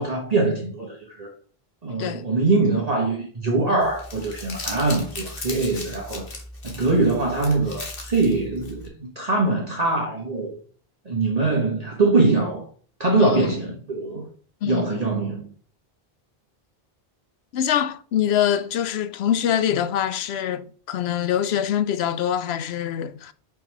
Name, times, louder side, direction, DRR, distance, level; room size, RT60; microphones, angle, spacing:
voice 1, 0.0-1.3 1.8-6.3 6.6-10.6 11.0-12.7 13.0-14.3 14.7-15.5, right 3 dB, 40° right, 1.4 m, -23 dB
Crumpling crinkling, 3.8-8.9, left 2 dB, 65° left, 1.7 m, -37 dB
voice 2, 13.2-13.5 14.6-15.0 17.5-23.3, left 10 dB, 90° left, 0.9 m, -24 dB
5.5 x 4.7 x 5.4 m
omnidirectional pair, 1.0 m